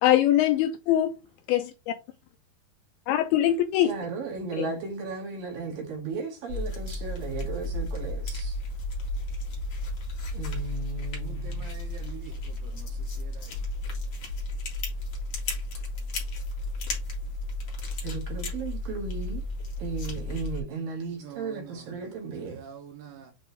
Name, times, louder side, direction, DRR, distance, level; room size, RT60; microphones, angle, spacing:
voice 1, 0.0-1.1 1.5-1.9 3.1-3.9 4.6-4.7, left 12 dB, 85° left, 2.3 m, -22 dB
voice 2, 3.8-8.6 10.3-11.7 18.0-19.4 19.8-22.6, right 4 dB, 60° right, 3.5 m, -35 dB
sound 1, 6.5-20.6, left 2 dB, 45° left, 2.4 m, -33 dB
voice 3, 11.1-12.3 12.6-12.9 13.2-13.5 21.2-21.7 22.5-23.3, right 9 dB, 75° right, 2.6 m, -44 dB
7.9 x 3.8 x 3.4 m
omnidirectional pair, 4.9 m